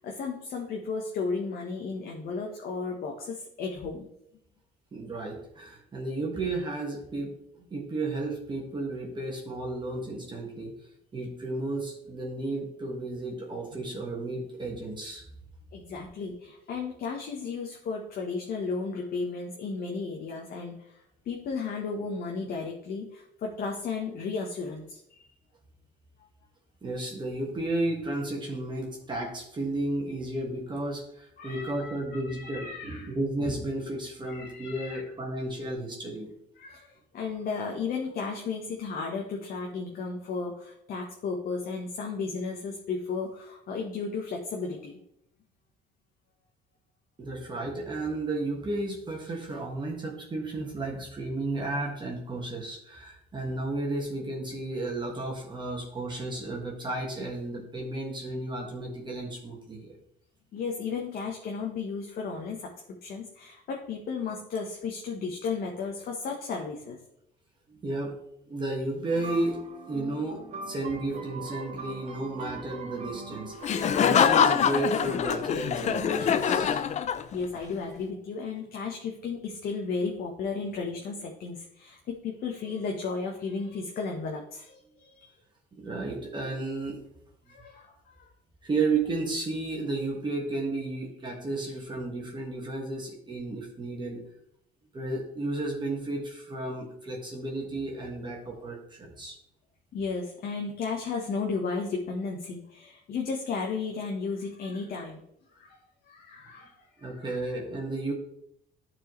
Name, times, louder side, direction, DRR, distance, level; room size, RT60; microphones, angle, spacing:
voice 1, 0.0-4.1 15.7-25.3 31.4-33.1 34.2-35.0 36.6-45.0 60.5-62.7 63.0-67.0 77.3-85.3 87.5-88.3 99.9-105.2 105.5-105.8 106.0-107.4, left 4 dB, 60° left, 1 dB, 1.1 m, -34 dB
voice 2, 4.9-15.2 26.8-36.3 47.2-60.0 67.7-68.2 68.5-76.8 85.7-87.0 88.6-94.2 94.9-99.4 107.0-108.1, right 2 dB, 25° right, -2 dB, 1.6 m, -33 dB
sound 1, 69.1-74.3, right 3 dB, 40° right, 1.0 m, -41 dB
Laughter, 73.6-77.6, left 8 dB, 45° left, 0.5 m, -24 dB
11.0 x 4.6 x 3.1 m, 0.76 s
cardioid pair, 110°, 17 cm